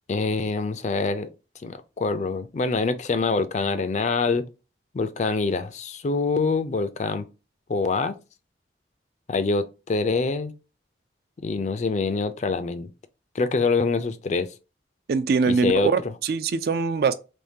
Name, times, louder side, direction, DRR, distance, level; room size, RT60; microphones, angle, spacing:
voice 1, 0.1-1.3 1.6-4.4 4.9-7.2 7.7-8.1 9.3-10.5 11.4-12.9 13.4-14.5 15.5-15.9, left 3 dB, 40° left, 0.4 m, -25 dB
voice 2, 15.1-17.1, right 5 dB, 55° right, 0.4 m, -23 dB
3.6 x 3.1 x 2.7 m
head